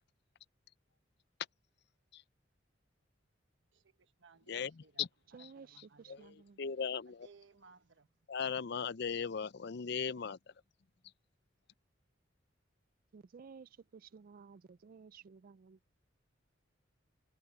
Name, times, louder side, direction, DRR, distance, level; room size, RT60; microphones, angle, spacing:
voice 1, 3.7-6.6 7.0-8.1, right 4 dB, 75° right, 1.2 m, -63 dB
voice 2, 5.3-6.6 13.1-15.8, right 5 dB, 50° right, 0.4 m, -55 dB
voice 3, 6.1-7.3 8.3-10.4, left 6 dB, 60° left, 0.6 m, -37 dB
head